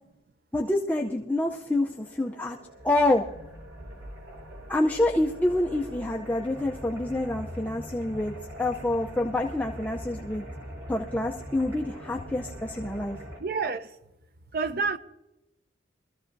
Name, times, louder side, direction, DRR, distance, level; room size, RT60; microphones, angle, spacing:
voice 1, 0.5-2.6 2.8-3.3 4.7-10.4 10.9-13.2, left 1 dB, 10° left, 0.5 m, -27 dB
sound 1, 1.8-13.4, equal, 85° right, 4.7 m, -42 dB
voice 2, 13.4-13.9 14.5-15.0, right 4 dB, 50° right, 0.6 m, -28 dB
23.5 x 14.0 x 2.6 m
head